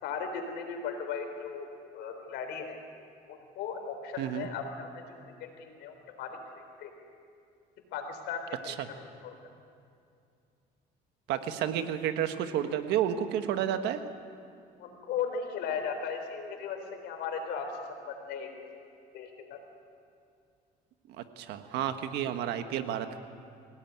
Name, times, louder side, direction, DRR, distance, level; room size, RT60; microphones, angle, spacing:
voice 1, 0.0-2.8 3.3-6.9 7.9-9.4 14.8-18.5 19.1-19.6, left 6 dB, 85° left, 5 dB, 3.9 m, -37 dB
voice 2, 4.2-4.5 8.7-8.8 11.3-14.0 21.4-23.2, right 10 dB, 85° right, 8 dB, 1.5 m, -31 dB
24.0 x 17.5 x 9.5 m, 2.5 s
cardioid pair, 110°, 17 cm